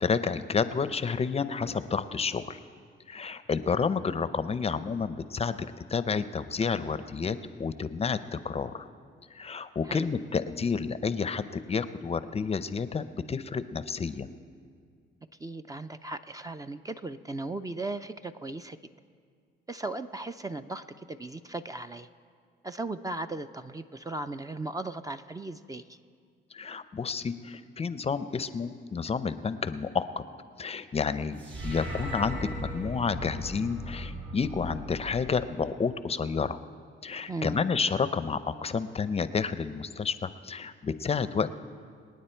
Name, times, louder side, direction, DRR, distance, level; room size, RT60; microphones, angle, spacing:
voice 1, 0.0-2.6 3.1-5.6 5.9-8.9 9.3-14.3 26.5-30.1 30.6-36.6 37.0-41.5, left 5 dB, 30° left, 13 dB, 0.6 m, -30 dB
voice 2, 15.4-18.8 19.7-22.1 22.6-26.0 37.3-37.6, right 2 dB, 20° right, 9 dB, 0.5 m, -37 dB
sound 1, 31.4-35.8, equal, 70° right, 3.0 m, -38 dB
26.0 x 9.4 x 4.5 m, 2.1 s
cardioid pair, 90°, 20 cm